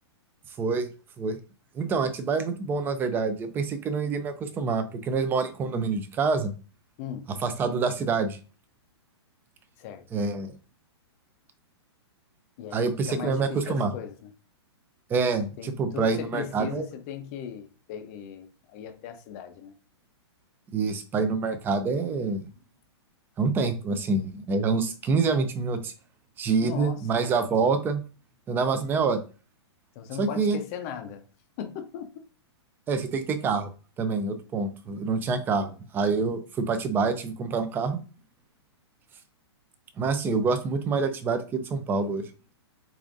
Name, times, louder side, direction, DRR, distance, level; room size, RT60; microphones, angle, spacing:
voice 1, 1.7-6.5 7.4-8.4 10.1-10.5 12.7-13.9 15.1-16.8 20.7-22.5 23.4-25.9 26.4-28.0 28.5-29.2 30.2-30.6 32.9-33.7 34.0-38.0 40.0-42.3, right 4 dB, 15° right, 0.5 m, -26 dB
voice 2, 7.0-7.3 9.8-10.1 12.6-14.3 15.6-19.7 26.6-27.1 29.9-31.3 31.6-32.2, left 9 dB, 35° left, 0.6 m, -38 dB
6.9 x 2.6 x 2.5 m
hypercardioid pair, 150°, 14 cm